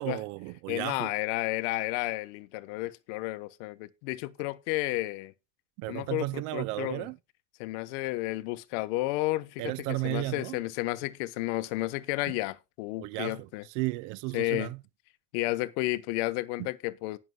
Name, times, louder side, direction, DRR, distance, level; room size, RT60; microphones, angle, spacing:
voice 1, 0.0-1.1 5.8-7.2 9.6-10.6 12.3-12.4 13.0-13.5 13.7-14.8 16.6-16.7, right 21 dB, 55° right, 0.5 m, -34 dB
voice 2, 0.7-5.3 5.9-7.1 7.6-13.7 14.3-14.7 15.3-17.2, left 19 dB, 70° left, 1.1 m, -32 dB
19.0 x 6.7 x 2.3 m
cardioid pair, 165°, 36 cm